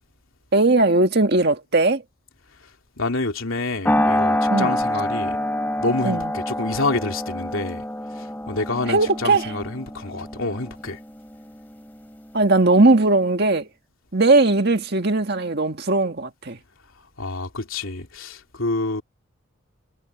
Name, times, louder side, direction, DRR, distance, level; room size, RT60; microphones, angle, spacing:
voice 1, 0.5-2.0 4.5-4.8 6.0-6.3 8.9-9.5 12.3-13.7 14.1-16.6, right 2 dB, 50° right, 1.8 m, -18 dB
voice 2, 3.0-5.4 5.8-7.9 8.1-11.0 17.2-19.0, left 2 dB, 75° left, 3.0 m, -27 dB
sound 1, 3.8-12.4, left 1 dB, 10° left, 4.6 m, -26 dB
head